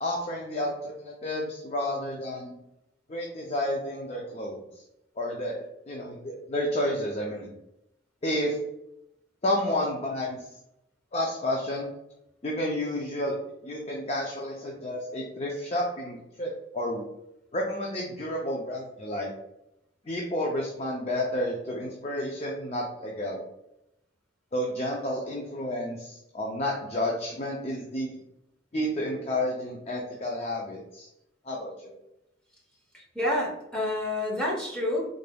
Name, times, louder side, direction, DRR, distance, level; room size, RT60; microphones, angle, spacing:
voice 1, 0.0-2.5 3.1-4.6 5.2-7.5 8.2-8.6 9.4-10.5 11.1-11.9 12.4-13.4 13.6-17.0 17.5-19.3 20.0-23.4 24.5-28.2 28.7-31.1 31.4-31.9, left 1 dB, 35° left, -2 dB, 0.4 m, -31 dB
voice 2, 32.9-35.1, left 1 dB, 5° left, -4 dB, 0.9 m, -29 dB
3.8 x 3.3 x 2.2 m, 0.84 s
head